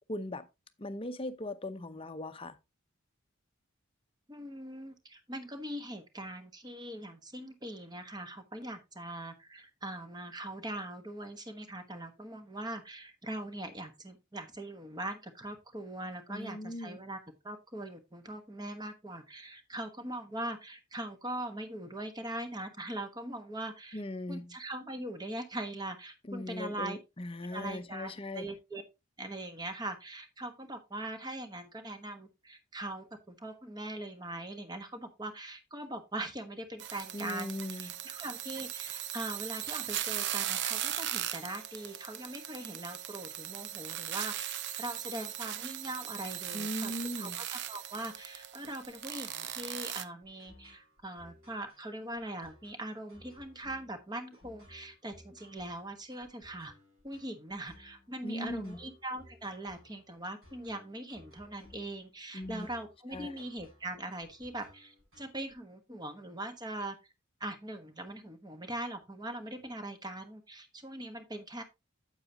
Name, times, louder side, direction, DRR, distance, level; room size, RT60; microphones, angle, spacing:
voice 1, 0.1-0.5 0.8-2.6 16.3-17.0 23.9-24.5 26.3-28.5 37.1-37.9 46.5-47.4 58.2-58.8 62.3-62.7 63.1-63.4, left 1 dB, 25° left, 0.7 m, -39 dB
voice 2, 4.3-17.2 17.4-24.0 24.3-27.0 27.5-28.8 29.2-56.7 57.0-67.0 67.4-71.6, right 1 dB, 20° right, 1.2 m, -41 dB
sound 1, 36.8-50.0, right 11 dB, 55° right, 0.6 m, -38 dB
sound 2, 49.7-65.5, left 1 dB, 80° right, 6.3 m, -59 dB
8.9 x 8.2 x 2.8 m
head